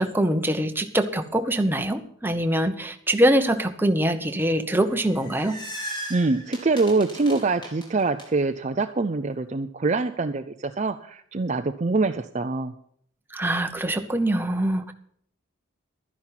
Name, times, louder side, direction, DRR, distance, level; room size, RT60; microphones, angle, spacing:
voice 1, 0.0-5.6 13.3-14.9, right 1 dB, 10° right, 7 dB, 0.9 m, -23 dB
sound 1, 4.9-8.2, equal, 20° left, 3.4 m, -37 dB
voice 2, 6.1-12.7, right 3 dB, 35° right, 8 dB, 0.5 m, -24 dB
12.5 x 10.5 x 5.8 m, 0.64 s
head